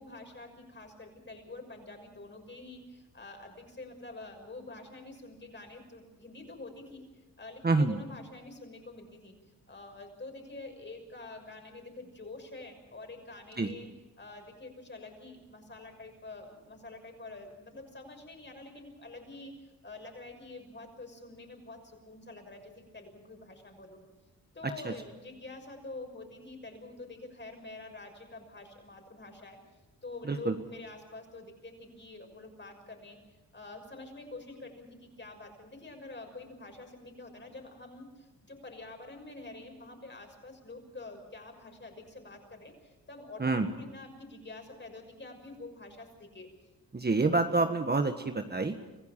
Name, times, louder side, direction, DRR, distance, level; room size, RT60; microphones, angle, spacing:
voice 1, 0.0-9.3 9.7-13.9 14.2-24.0 24.5-29.6 30.0-46.5, left 2 dB, 30° left, 4 dB, 6.2 m, -47 dB
voice 2, 7.6-8.0 13.6-13.7 24.6-24.9 30.2-30.5 43.4-43.7 46.9-48.7, right 3 dB, 25° right, 6 dB, 1.5 m, -27 dB
26.0 x 15.5 x 7.5 m, 1.1 s
cardioid pair, 80°, 36 cm